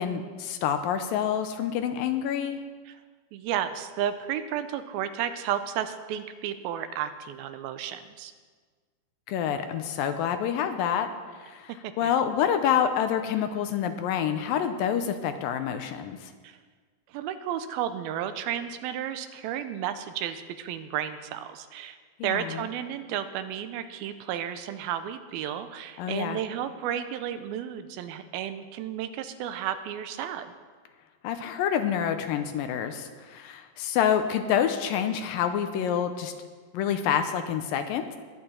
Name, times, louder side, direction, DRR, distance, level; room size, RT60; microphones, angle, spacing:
voice 1, 0.0-2.6 9.3-11.1 11.4-16.3 22.2-22.7 26.0-26.4 31.2-36.3 36.7-38.2, left 9 dB, 80° left, 8 dB, 2.3 m, -27 dB
voice 2, 3.3-8.3 11.7-12.1 16.4-16.6 17.1-22.0 22.2-30.5, right 10 dB, 85° right, 10 dB, 2.5 m, -33 dB
20.5 x 8.8 x 4.4 m, 1.5 s
omnidirectional pair, 4.3 m